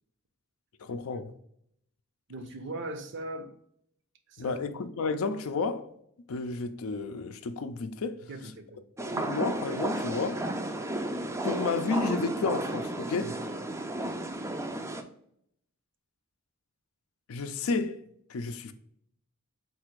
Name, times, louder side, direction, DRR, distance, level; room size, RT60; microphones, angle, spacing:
voice 1, 0.8-1.3 4.4-5.9 6.3-8.3 9.1-10.4 11.4-13.4 17.3-18.0 18.3-18.7, left 4 dB, 70° left, 0.4 m, -31 dB
voice 2, 2.3-3.5 4.3-4.6 8.3-8.8 13.2-13.4, right 2 dB, 55° right, 0.6 m, -39 dB
sound 1, 9.0-15.0, right 1 dB, 15° right, 0.4 m, -33 dB
3.9 x 2.5 x 4.6 m
head